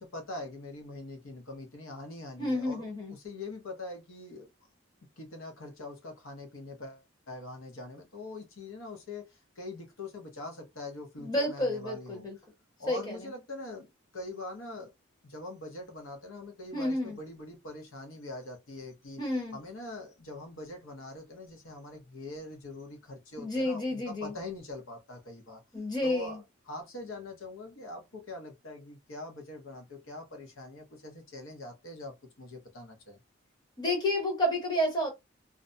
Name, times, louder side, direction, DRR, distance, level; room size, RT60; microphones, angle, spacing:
voice 1, 0.0-4.5 5.2-12.3 12.8-14.9 15.2-19.2 19.5-25.6 26.0-26.4 26.7-33.2, left 2 dB, 80° left, 0.8 m, -43 dB
voice 2, 2.4-3.1 11.2-12.4 12.9-13.3 16.7-17.2 19.2-19.6 23.4-24.3 25.7-26.4 33.8-35.1, left 1 dB, 20° left, 0.9 m, -30 dB
2.4 x 2.1 x 2.5 m
head